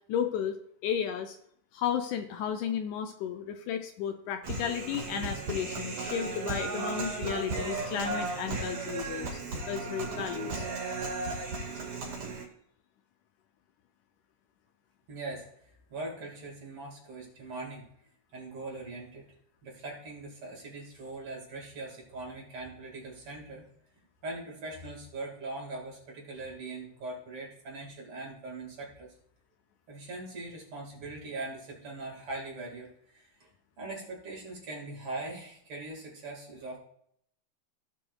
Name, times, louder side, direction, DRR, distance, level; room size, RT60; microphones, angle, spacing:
voice 1, 0.1-1.4 1.7-10.7, left 8 dB, 80° left, 6 dB, 1.9 m, -33 dB
Human voice, 4.4-12.4, right 3 dB, 70° right, 4.1 m, -35 dB
voice 2, 15.1-15.5 15.9-17.9 18.3-19.2 19.6-23.6 24.2-29.1 29.9-33.5 33.8-36.8, right 2 dB, 45° right, -2 dB, 2.8 m, -41 dB
17.0 x 5.8 x 2.4 m, 0.68 s
omnidirectional pair, 3.8 m